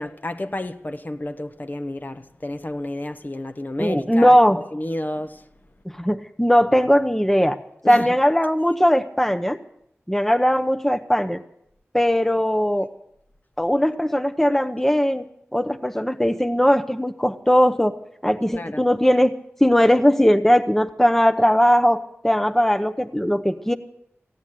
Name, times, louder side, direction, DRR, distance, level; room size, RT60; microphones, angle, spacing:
voice 1, 0.0-5.5 7.8-8.1 18.5-18.8, left 1 dB, 40° left, 0.9 m, -31 dB
voice 2, 3.8-4.6 5.9-7.6 7.9-9.6 10.1-11.4 11.9-12.9 13.6-15.2 15.5-17.9 18.2-19.3 19.6-23.7, equal, 5° left, 0.8 m, -19 dB
16.0 x 9.1 x 9.9 m
wide cardioid pair, 65°, 5 cm